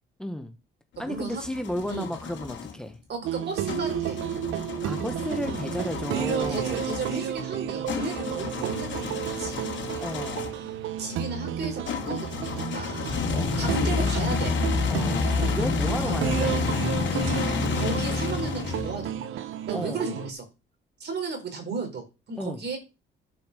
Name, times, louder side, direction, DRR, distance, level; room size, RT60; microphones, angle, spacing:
voice 1, 0.2-0.5 1.0-3.0 4.8-6.7 10.0-10.5 13.3-14.1 14.9-16.6 19.7-20.0 22.4-22.6, left 1 dB, 5° left, 1.4 m, -33 dB
sound 1, 0.9-2.7 3.7-10.7 11.8-19.1, left 5 dB, 70° left, 2.8 m, -30 dB
voice 2, 1.0-1.4 1.9-2.1 3.1-4.2 6.1-10.0 11.0-14.5 16.0-16.2 17.1-20.4 21.0-22.8, right 3 dB, 60° right, 4.5 m, -35 dB
sound 2, 3.2-20.3, right 10 dB, 85° right, 0.9 m, -32 dB
11.0 x 5.8 x 6.8 m
cardioid pair, 90°, 20 cm